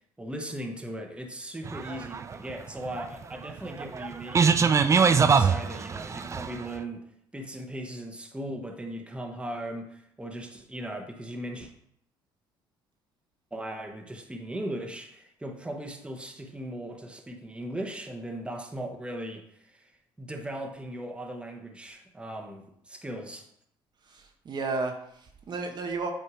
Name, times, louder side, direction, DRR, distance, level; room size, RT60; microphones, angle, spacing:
voice 1, 0.2-4.6 4.9-7.1 7.3-11.7 13.5-19.9 20.2-23.5, right 1 dB, 10° right, 3 dB, 1.1 m, -38 dB
sound 1, 1.6-6.7, right 5 dB, 30° right, 0.4 m, -23 dB
voice 2, 24.1-26.1, right 3 dB, 45° right, 4 dB, 0.9 m, -33 dB
7.9 x 2.7 x 4.9 m, 0.71 s
supercardioid pair, 75°, 10 cm